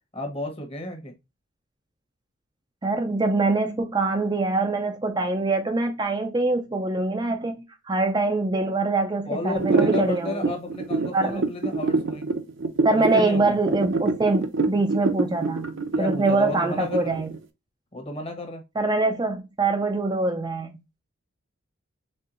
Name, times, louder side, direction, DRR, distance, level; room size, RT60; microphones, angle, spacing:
voice 1, 0.1-1.1 9.3-12.3 12.9-13.6 15.9-17.2 17.9-18.6, left 1 dB, 25° left, 1.1 m, -32 dB
voice 2, 2.8-10.6 11.1-11.4 12.8-15.7 16.0-17.3 18.8-20.7, right 2 dB, 20° right, 0.4 m, -24 dB
sound 1, 9.6-17.4, right 3 dB, 65° right, 0.7 m, -25 dB
4.4 x 3.6 x 2.5 m
head